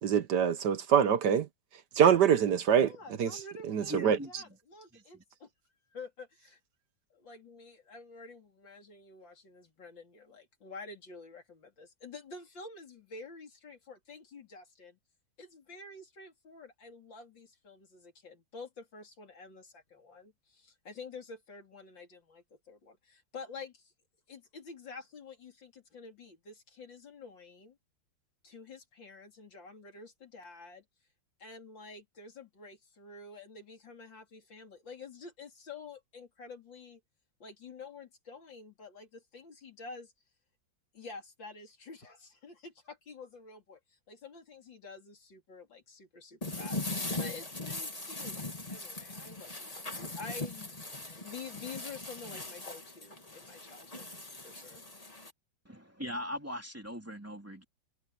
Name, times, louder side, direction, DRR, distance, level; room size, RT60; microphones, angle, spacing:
voice 1, 0.0-1.5 1.9-2.9 3.2-3.3 3.7-4.2, right 8 dB, 65° right, 1.5 m, -24 dB
voice 2, 2.8-4.0 4.3-5.5 5.9-6.6 7.1-15.0 15.4-23.9 24.3-27.8 28.4-30.8 31.4-37.0 37.4-40.1 40.9-48.4 48.7-54.1 54.4-54.8, left 4 dB, 80° left, 4.2 m, -49 dB
voice 3, 3.8-4.3 4.9-5.2 55.6-57.6, equal, 5° right, 3.0 m, -40 dB
sound 1, 46.4-55.3, left 2 dB, 20° left, 2.3 m, -40 dB
omnidirectional pair, 2.0 m